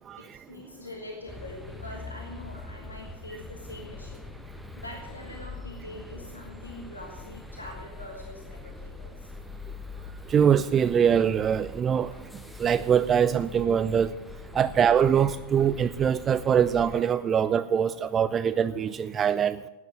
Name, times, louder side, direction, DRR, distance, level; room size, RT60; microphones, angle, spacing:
voice 1, 0.2-4.3 4.8-9.3 14.6-14.7, left 1 dB, 80° left, 1 dB, 1.7 m, -43 dB
sound 1, 1.3-17.0, left 3 dB, 5° left, 1.0 m, -43 dB
voice 2, 10.3-12.1 12.6-14.1 14.5-19.6, right 8 dB, 25° right, 14 dB, 0.4 m, -23 dB
11.5 x 9.6 x 7.5 m, 1.1 s
figure-of-eight pair, 90°, 0 cm